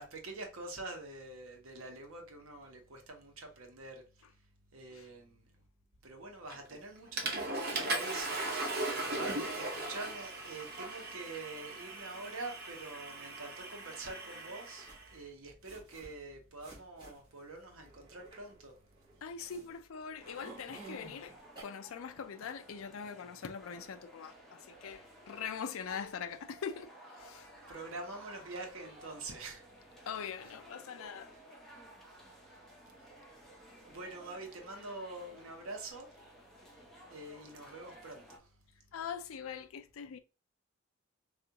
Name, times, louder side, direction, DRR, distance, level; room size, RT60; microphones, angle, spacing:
voice 1, 0.0-4.0 4.7-5.4 6.0-18.7 27.7-29.6 33.0-33.1 33.9-36.1 37.1-38.4, right 2 dB, 80° right, 0.9 m, -45 dB
Water / Toilet flush, 6.5-6.8 7.2-15.0, right 2 dB, 50° right, 0.7 m, -38 dB
sound 1, 14.8-21.6, right 3 dB, 25° right, 1.3 m, -54 dB
voice 2, 19.2-26.9 27.2-27.5 30.1-31.3 38.9-40.2, left 7 dB, 80° left, 0.4 m, -42 dB
sound 2, 20.2-38.4, right 1 dB, ahead, 0.8 m, -56 dB
3.4 x 2.4 x 2.8 m
head